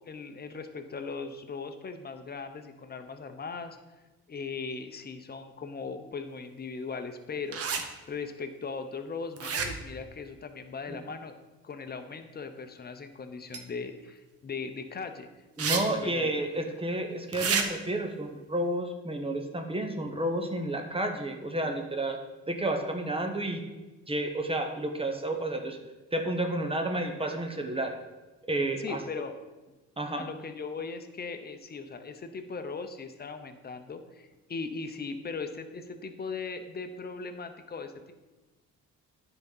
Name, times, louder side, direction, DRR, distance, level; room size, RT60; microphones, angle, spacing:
voice 1, 0.1-3.8 4.3-7.8 8.1-11.3 11.6-15.3 15.7-16.5 28.8-29.3 30.2-38.1, left 4 dB, 30° left, 7 dB, 0.9 m, -39 dB
sound 1, 7.5-7.8 9.4-10.0 13.5-13.6 15.6-15.8 16.1-16.2 17.3-17.6, right 6 dB, 50° right, 1.0 m, -29 dB
voice 2, 15.6-22.2 22.5-23.6 24.1-25.8 26.1-27.9 28.5-29.0 30.0-30.2, right 1 dB, 20° right, 4 dB, 1.0 m, -31 dB
9.7 x 4.0 x 5.5 m, 1.2 s
cardioid pair, 90°, 30 cm